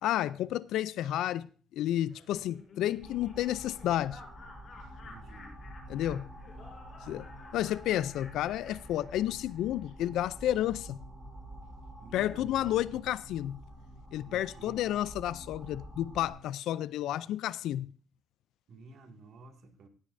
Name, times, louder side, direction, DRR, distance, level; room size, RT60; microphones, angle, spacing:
voice 1, 0.0-4.2 5.9-6.2 7.1-7.3 7.5-11.0 12.1-13.6 14.1-17.9, left 13 dB, 85° left, 0.4 m, -31 dB
Laughter, 2.1-9.6, left 3 dB, 50° left, 5.8 m, -52 dB
sound 1, 3.0-16.3, equal, ahead, 7.1 m, -48 dB
voice 2, 5.0-5.6 12.0-12.8 14.3-14.8 18.7-19.9, right 3 dB, 65° right, 2.1 m, -51 dB
16.0 x 9.7 x 2.6 m
cardioid pair, 90°, 0 cm